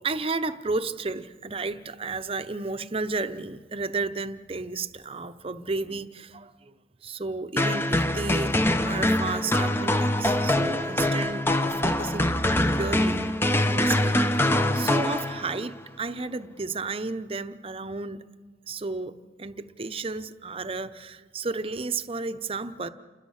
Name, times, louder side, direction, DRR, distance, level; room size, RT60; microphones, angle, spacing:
voice 1, 0.0-6.7 7.0-8.5 8.8-12.4 12.8-13.3 13.7-18.2 18.7-22.9, right 3 dB, 30° right, 11 dB, 0.8 m, -33 dB
sound 1, 7.6-15.7, left 1 dB, 15° left, 0.8 m, -24 dB
29.0 x 21.5 x 6.5 m, 1.4 s
head